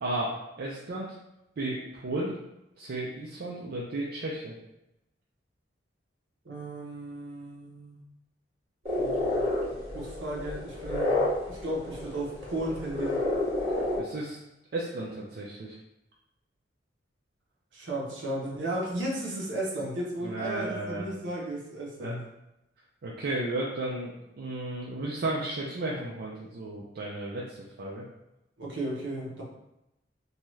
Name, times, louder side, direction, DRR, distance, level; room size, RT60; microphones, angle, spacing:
voice 1, 0.0-1.1 1.6-2.4 2.8-4.5 14.0-14.4 14.7-15.8 20.2-21.1 22.0-22.1 23.0-28.0, right 2 dB, 55° right, -4 dB, 0.4 m, -34 dB
voice 2, 6.4-8.0 9.0-9.5 9.9-11.1 11.5-13.2 17.7-22.2 28.6-29.4, right 1 dB, 70° right, -3 dB, 0.8 m, -34 dB
sound 1, 8.9-14.0, left 2 dB, 35° right, 1.4 m, -30 dB
2.7 x 2.3 x 3.1 m, 0.89 s
head